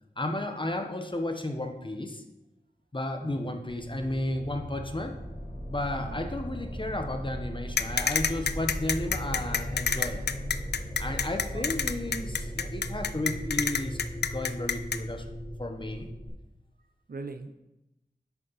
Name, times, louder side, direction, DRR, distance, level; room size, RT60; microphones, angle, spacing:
voice 1, 0.2-2.2 2.9-5.2 5.7-10.3 11.0-15.2 15.6-16.1, left 1 dB, 30° left, 5 dB, 1.0 m, -33 dB
voice 2, 3.2-3.6 5.9-6.3 11.5-11.7 17.1-17.5, right 3 dB, 65° right, 9 dB, 0.6 m, -41 dB
sound 1, 3.7-16.3, equal, 50° left, 3.4 m, -37 dB
sound 2, 7.8-15.0, left 7 dB, 80° left, 0.4 m, -27 dB
8.4 x 6.5 x 4.1 m, 0.94 s
wide cardioid pair, 45°, 17 cm